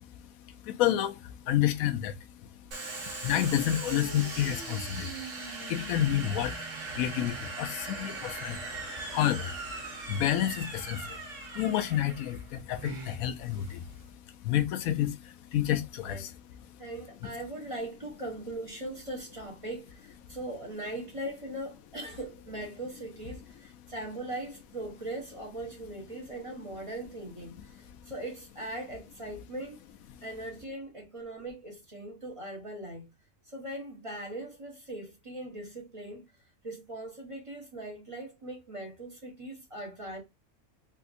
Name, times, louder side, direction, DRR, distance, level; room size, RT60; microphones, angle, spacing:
voice 1, 0.0-2.5 2.9-5.2 5.6-8.8 9.1-9.6 9.9-11.3 11.5-16.3 16.7-16.8, left 11 dB, 85° left, 1.0 m, -30 dB
Domestic sounds home sounds, 2.7-14.1, right 3 dB, 65° right, 1.5 m, -40 dB
voice 2, 16.0-16.3 16.8-29.8 30.2-33.1 33.5-36.3 36.6-40.2, right 1 dB, 25° right, 1.0 m, -40 dB
3.4 x 2.7 x 2.5 m
omnidirectional pair, 1.4 m